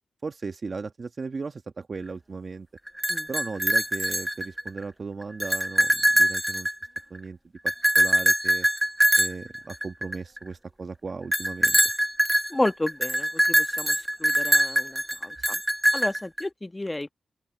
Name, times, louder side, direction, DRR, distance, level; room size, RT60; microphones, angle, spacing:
voice 1, 0.2-2.7 3.3-6.7 7.1-7.4 7.6-8.7 9.2-11.8, right 4 dB, 55° right, 1.2 m, -36 dB
sound 1, 2.9-4.8 5.2-7.2 7.7-10.4 11.3-16.4, equal, 5° right, 0.7 m, -23 dB
voice 2, 12.5-15.6 15.9-17.1, left 2 dB, 25° left, 1.2 m, -31 dB
open air
cardioid pair, 45°, 0 cm